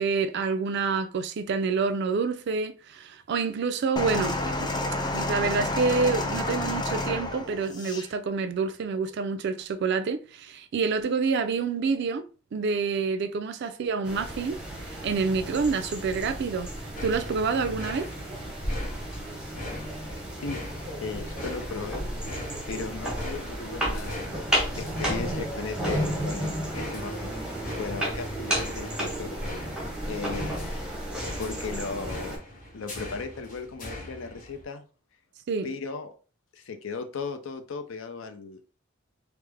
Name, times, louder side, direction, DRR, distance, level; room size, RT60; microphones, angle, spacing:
voice 1, 0.0-4.7 5.1-12.2 12.5-14.6 15.0-16.7 17.0-18.1 35.5-35.7, right 4 dB, 55° right, 0.3 m, -27 dB
sound 1, 4.0-8.1 9.0-9.1, left 2 dB, 20° left, 0.4 m, -30 dB
sound 2, 14.0-32.4, right 1 dB, 5° right, 0.8 m, -33 dB
sound 3, 16.9-34.6, left 1 dB, 40° left, 1.0 m, -42 dB
voice 2, 20.4-22.1 22.7-24.4 24.7-27.5 27.8-29.4 30.0-30.8 31.4-32.4 32.7-34.8 35.6-36.1 36.5-38.6, left 4 dB, 70° left, 0.5 m, -36 dB
3.2 x 2.0 x 3.4 m
head